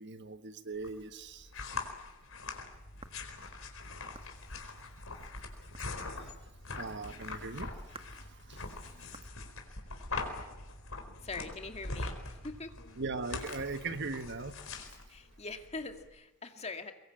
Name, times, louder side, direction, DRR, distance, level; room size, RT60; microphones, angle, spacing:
voice 1, 0.0-1.5 5.2-5.3 6.8-8.6 8.9-9.1 13.0-14.5, right 3 dB, 60° right, 10 dB, 1.5 m, -40 dB
sound 1, 0.7-16.1, left 3 dB, 80° left, 4.4 m, -43 dB
sound 2, 2.2-3.4 4.1-4.4 5.7-6.2 7.0-7.2 7.9-8.2 9.1-9.4, right 3 dB, 30° right, 1.6 m, -53 dB
sound 3, 2.7-14.8, right 1 dB, 60° left, 6.5 m, -55 dB
voice 2, 11.2-12.7 15.1-16.9, left 3 dB, 30° left, 6 dB, 2.3 m, -42 dB
24.0 x 22.0 x 8.8 m, 0.98 s
head